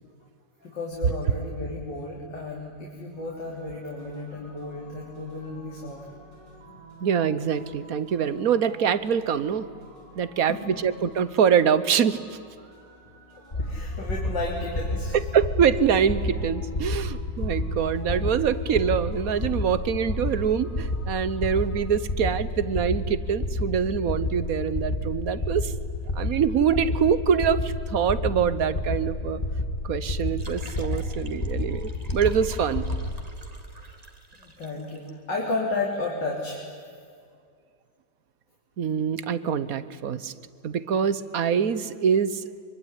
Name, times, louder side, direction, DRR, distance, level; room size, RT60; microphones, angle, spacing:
voice 1, 0.6-6.1 10.5-10.8 13.5-15.1 33.7-34.0 34.4-36.6, left 2 dB, 75° left, -3 dB, 4.3 m, -33 dB
sound 1, 3.1-22.0, right 1 dB, 75° right, 8.0 m, -50 dB
voice 2, 7.0-9.7 10.1-12.2 15.3-25.7 26.1-29.4 29.8-32.9 38.8-40.3 40.6-42.5, right 7 dB, 55° right, 15 dB, 1.4 m, -24 dB
sound 2, 13.5-33.2, left 2 dB, 30° left, 1.6 m, -30 dB
sound 3, 30.2-35.1, right 2 dB, 20° right, 1.9 m, -48 dB
24.5 x 24.0 x 10.0 m, 2.2 s
omnidirectional pair, 1.9 m